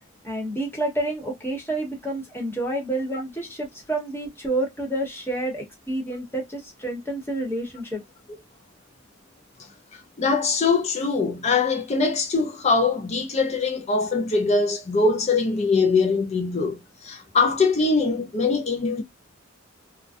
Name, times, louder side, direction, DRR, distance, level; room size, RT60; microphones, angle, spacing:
voice 1, 0.2-8.0, right 1 dB, 10° left, 1.0 m, -29 dB
voice 2, 10.2-19.0, left 4 dB, 35° left, 0.4 m, -22 dB
2.4 x 2.1 x 2.5 m
head